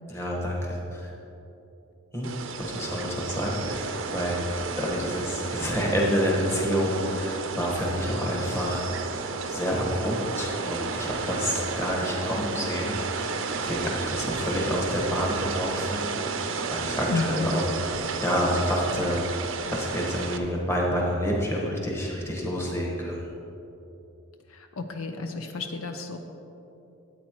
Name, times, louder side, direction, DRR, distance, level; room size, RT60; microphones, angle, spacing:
voice 1, 0.1-1.1 2.1-2.3 2.7-4.4 4.7-8.9 9.1-17.6 18.2-19.3 19.7-23.3, equal, 10° left, -3 dB, 1.3 m, -28 dB
sound 1, 2.2-20.4, right 4 dB, 60° right, 0.6 m, -32 dB
voice 2, 17.1-17.5 24.5-26.2, left 3 dB, 70° left, 5 dB, 0.6 m, -31 dB
13.0 x 8.6 x 3.0 m, 2.9 s
head